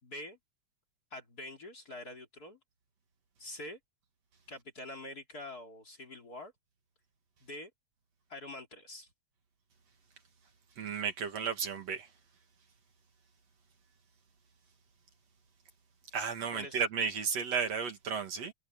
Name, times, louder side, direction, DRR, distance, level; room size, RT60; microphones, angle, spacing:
voice 1, 0.0-0.4 1.1-2.6 3.4-3.8 4.5-6.5 7.4-7.7 8.3-9.1 16.5-16.8, left 1 dB, 30° left, 3.2 m, -45 dB
voice 2, 10.8-12.1 16.1-18.5, right 6 dB, 60° right, 3.1 m, -33 dB
omnidirectional pair, 3.5 m